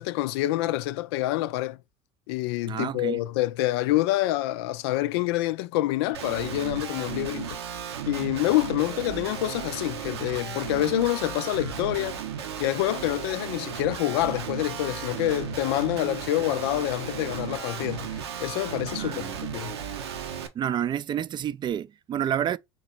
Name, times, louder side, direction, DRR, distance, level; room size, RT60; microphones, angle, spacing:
voice 1, 0.0-1.8 2.3-7.6 8.1-12.2 12.6-19.7, left 15 dB, 75° left, 0.4 m, -27 dB
voice 2, 2.7-3.2 19.0-19.4 20.5-22.6, right 9 dB, 35° right, 0.4 m, -29 dB
Guitar, 6.1-20.5, right 7 dB, 85° right, 0.8 m, -35 dB
3.9 x 3.1 x 3.9 m
hypercardioid pair, 85°, 13 cm